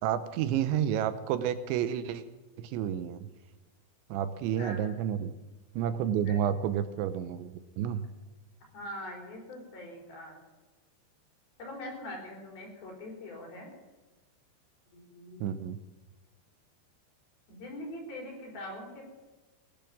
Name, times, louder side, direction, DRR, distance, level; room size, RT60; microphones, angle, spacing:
voice 1, 0.0-2.2 2.6-3.3 4.1-5.3 5.8-8.1 15.4-15.8, right 9 dB, 80° right, 12 dB, 3.0 m, -30 dB
voice 2, 4.2-4.8 6.3-6.4 8.7-10.4 11.6-13.7 14.9-15.5 17.5-19.1, left 1 dB, 55° left, 0 dB, 5.7 m, -43 dB
18.5 x 10.5 x 7.2 m, 1.2 s
omnidirectional pair, 5.4 m